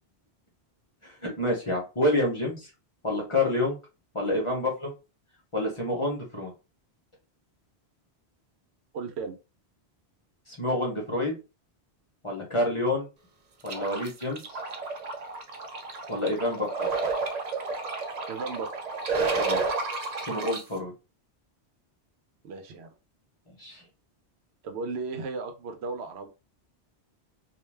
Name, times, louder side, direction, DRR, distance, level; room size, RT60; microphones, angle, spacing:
voice 1, 1.0-2.7 3.0-3.8 4.1-4.9 5.5-6.5 10.5-11.4 12.2-13.1 13.6-14.4 16.1-16.9 19.3-19.6 20.2-20.9 23.6-23.8, left 1 dB, 30° left, -2 dB, 0.8 m, -28 dB
voice 2, 8.9-9.3 18.3-18.7 22.4-22.9 24.6-26.3, right 4 dB, 75° right, 6 dB, 0.8 m, -35 dB
sound 1, 13.7-20.6, right 4 dB, 50° right, 0.5 m, -31 dB
2.4 x 2.2 x 3.2 m, 0.29 s
omnidirectional pair, 1.1 m